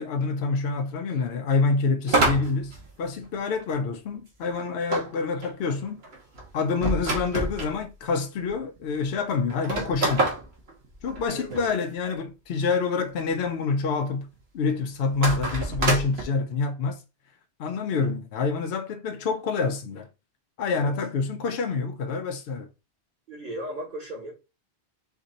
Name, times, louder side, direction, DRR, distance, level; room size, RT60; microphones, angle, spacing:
voice 1, 0.0-6.0 6.5-10.3 11.0-17.0 17.6-20.1 20.6-22.7, left 4 dB, 75° left, 0.8 m, -27 dB
sound 1, 2.1-3.6 4.9-7.7 8.5-8.6 8.8-8.9 9.5-11.7 15.1-16.2, right 2 dB, 70° right, 1.5 m, -27 dB
voice 2, 11.1-11.8 20.7-20.9 23.3-24.3, right 1 dB, 45° right, 1.6 m, -37 dB
4.4 x 2.7 x 4.0 m
omnidirectional pair, 1.1 m